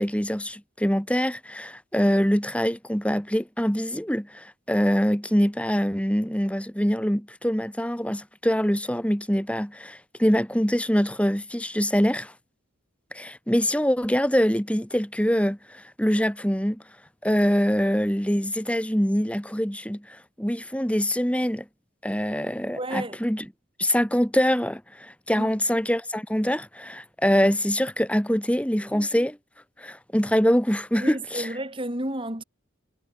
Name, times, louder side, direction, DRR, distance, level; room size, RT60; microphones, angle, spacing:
voice 1, 0.0-12.3 13.1-16.8 17.2-21.6 22.0-23.4 23.8-29.4 29.8-31.5, equal, 5° left, 3.0 m, -24 dB
voice 2, 22.8-23.2 25.4-25.5 31.0-32.4, right 1 dB, 25° right, 4.1 m, -31 dB
head